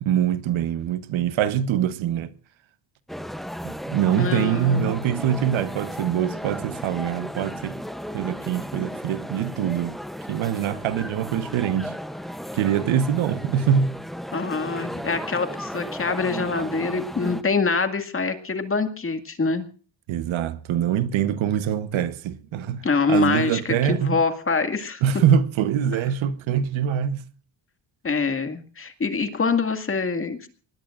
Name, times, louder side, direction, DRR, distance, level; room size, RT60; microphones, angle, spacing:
voice 1, 0.0-2.3 3.6-7.8 8.1-10.0 10.3-11.9 12.5-14.0 20.1-22.8 23.1-24.2 25.0-27.2, right 9 dB, 80° right, 1.2 m, -24 dB
sound 1, 3.1-17.4, equal, ahead, 0.7 m, -35 dB
voice 2, 4.2-4.9 14.3-19.6 22.8-25.0 28.0-30.5, left 4 dB, 25° left, 2.1 m, -25 dB
24.5 x 20.0 x 2.5 m
cardioid pair, 130°, 47 cm